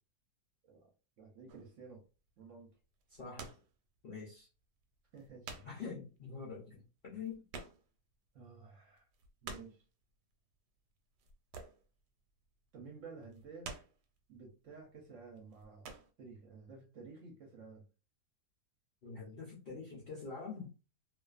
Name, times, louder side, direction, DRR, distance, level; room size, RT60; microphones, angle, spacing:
voice 1, 1.2-2.0 2.4-2.7 5.1-5.6 7.1-7.2 8.3-9.1 9.4-9.8 12.7-13.7 14.3-15.9 16.2-17.8, right 4 dB, 60° right, 1 dB, 0.9 m, -52 dB
sound 1, 1.5-1.8 2.9-3.7 4.1-4.2 4.8-4.9 5.1-5.9 6.2-6.3 6.5-6.6 6.8-8.1 8.5-8.6 8.9-9.9 11.2-12.0 12.3-12.6 13.2-14.2 14.8-15.0 15.4-16.1, right 4 dB, 85° right, 1.2 m, -49 dB
voice 2, 3.1-3.5 4.0-4.5 5.6-7.4 19.0-20.7, left 5 dB, 55° left, -5 dB, 0.6 m, -45 dB
2.4 x 2.4 x 2.3 m, 0.33 s
omnidirectional pair, 1.7 m